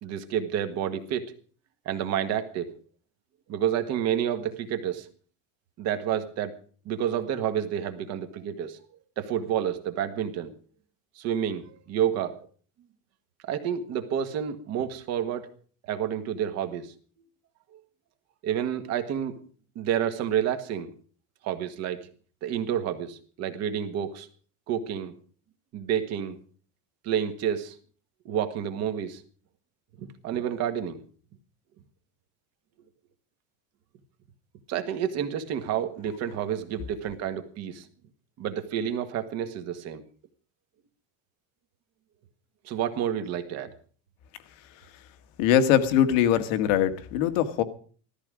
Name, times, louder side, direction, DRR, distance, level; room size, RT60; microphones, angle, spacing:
voice 1, 0.0-1.3 1.8-2.7 3.5-5.1 5.8-6.5 6.8-8.8 9.2-10.5 11.1-12.3 13.5-15.5 15.8-16.9 17.7-17.8 18.4-19.4 19.7-20.9 21.4-22.1 22.4-24.3 24.7-25.1 25.7-26.4 27.0-27.8 28.2-29.2 30.0-31.0 34.7-37.9 38.4-40.0 42.6-43.7, right 9 dB, 45° right, 8 dB, 1.6 m, -29 dB
voice 2, 45.4-47.6, left 10 dB, 85° left, 9 dB, 1.8 m, -22 dB
15.0 x 14.0 x 5.0 m, 0.42 s
cardioid pair, 175°, 38 cm